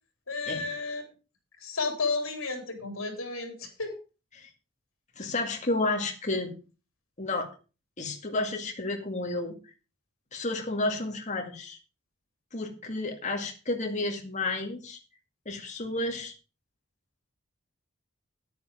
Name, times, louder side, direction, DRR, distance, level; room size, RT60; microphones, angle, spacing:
voice 1, 0.3-1.0 1.6-4.0, left 3 dB, 75° left, 4 dB, 3.8 m, -32 dB
voice 2, 5.2-6.5 7.2-7.5 8.0-9.6 10.3-11.8 12.5-15.0 15.5-16.3, left 2 dB, 35° left, 2 dB, 2.1 m, -31 dB
9.8 x 9.6 x 5.0 m, 0.33 s
head